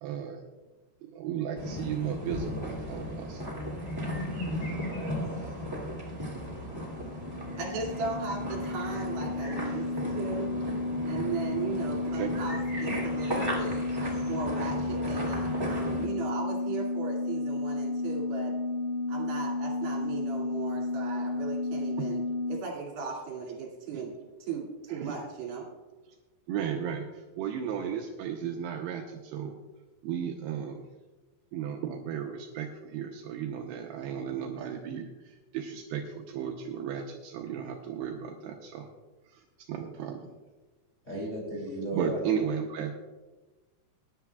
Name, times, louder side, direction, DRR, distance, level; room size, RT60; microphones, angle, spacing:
voice 1, 0.0-0.4 1.0-3.4 12.1-12.3 22.0-22.1 23.9-24.0 24.9-25.3 26.5-29.6 30.0-30.9 31.5-38.9 39.3-39.4 39.7-40.3 41.9-42.9, right 8 dB, 80° right, 2 dB, 2.6 m, -35 dB
sound 1, 1.5-16.1, equal, 30° right, 0.4 m, -36 dB
sound 2, 6.4-22.6, left 2 dB, 90° left, 3.9 m, -32 dB
voice 2, 7.6-10.6 11.1-13.7 14.2-18.6 19.1-24.1 24.4-25.7, right 5 dB, 60° right, -2 dB, 4.1 m, -37 dB
voice 3, 41.0-42.2, right 1 dB, 15° left, -4 dB, 2.1 m, -34 dB
19.5 x 10.5 x 2.3 m, 1.2 s
omnidirectional pair, 5.1 m